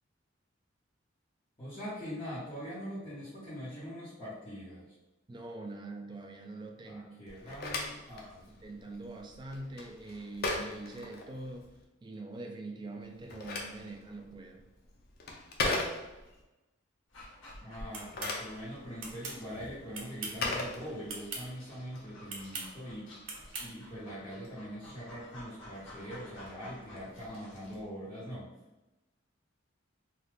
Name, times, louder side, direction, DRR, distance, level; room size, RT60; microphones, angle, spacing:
voice 1, 1.6-4.8 6.8-8.6 17.6-28.5, equal, 30° left, -12 dB, 1.2 m, -43 dB
voice 2, 5.3-7.2 8.6-11.7 12.0-14.6, right 2 dB, 25° right, 3 dB, 0.4 m, -44 dB
Telephone, 7.3-11.8 13.0-16.4 17.9-21.5, left 2 dB, 50° left, 0.5 m, -38 dB
Dog, 17.1-27.8, left 1 dB, 70° left, 1.0 m, -52 dB
sound 1, 17.9-18.4 19.0-19.4 19.9-20.4 21.1-21.4 22.3-22.7 23.3-23.7, right 3 dB, 80° right, 0.6 m, -40 dB
2.8 x 2.4 x 3.4 m, 1.0 s
head